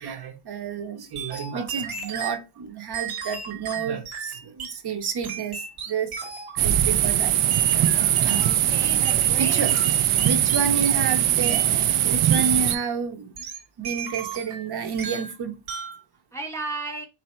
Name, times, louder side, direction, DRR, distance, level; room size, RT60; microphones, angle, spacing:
voice 1, 0.0-5.6 5.9-6.1 6.6-7.3 7.7-8.5 9.3-9.8 10.1-13.3 13.8-15.6, right 6 dB, 50° right, 0.9 m, -30 dB
sound 1, 1.2-2.4 2.9-4.8 5.2-6.6 7.5-8.6 9.0-11.2 11.4-11.7 12.3-12.9 13.4-14.7 15.0-15.4 15.7-16.0, right 7 dB, 70° right, 1.4 m, -35 dB
sound 2, 6.6-12.8, right 11 dB, 90° right, 0.7 m, -21 dB
voice 2, 8.3-9.6 16.3-17.1, right 3 dB, 5° left, 0.5 m, -34 dB
4.0 x 2.8 x 4.2 m
wide cardioid pair, 155°, 49 cm